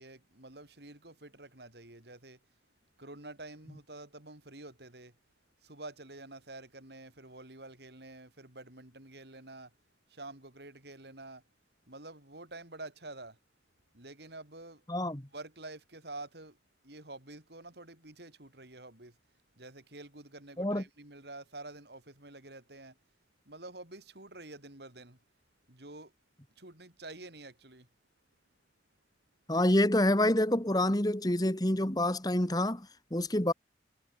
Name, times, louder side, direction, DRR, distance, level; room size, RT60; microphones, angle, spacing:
voice 1, 0.0-2.4 3.0-5.1 5.6-9.7 10.1-11.4 11.9-13.4 13.9-14.8 15.3-16.6 16.8-19.2 19.6-23.0 23.5-25.2 25.7-26.1 26.6-27.9, right 2 dB, 70° right, 4.5 m, -48 dB
voice 2, 14.9-15.2 20.6-20.8 29.5-33.5, left 1 dB, 20° left, 1.9 m, -27 dB
head